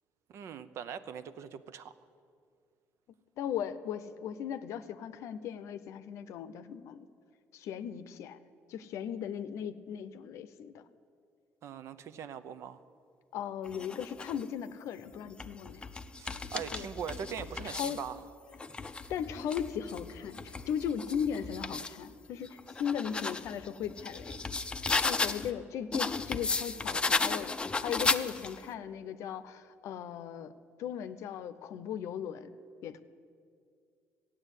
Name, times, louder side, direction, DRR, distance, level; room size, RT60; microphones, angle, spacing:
voice 1, 0.3-1.9 11.6-12.8 16.2-18.2, right 8 dB, 65° right, 13 dB, 0.6 m, -41 dB
voice 2, 3.4-7.1 7.5-8.4 8.7-10.8 13.3-15.9 16.7-16.9 17.6-18.0 19.1-24.4 25.0-30.5 30.8-32.5 32.8-33.0, left 8 dB, 75° left, 13 dB, 0.7 m, -37 dB
sound 1, 13.7-14.4 15.1-18.1 18.5-22.0 22.4-25.5 25.9-28.7, left 3 dB, 20° left, 0.5 m, -35 dB
14.0 x 8.9 x 8.2 m, 2.3 s
cardioid pair, 110°, 5 cm